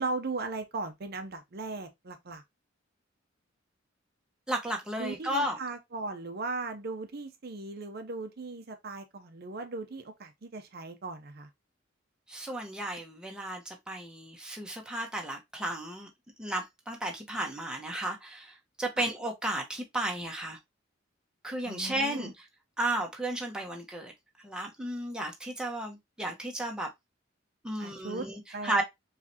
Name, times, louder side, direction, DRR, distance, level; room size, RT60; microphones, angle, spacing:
voice 1, 0.0-2.4 5.0-11.5 19.0-19.1 21.6-22.3 27.8-28.3 28.5-28.8, right 3 dB, 50° right, 0.7 m, -37 dB
voice 2, 4.5-5.6 12.3-16.1 16.4-20.6 21.4-22.4 22.8-24.1 24.4-26.9 27.6-28.8, right 1 dB, 5° right, 1.0 m, -34 dB
4.8 x 3.2 x 2.7 m
head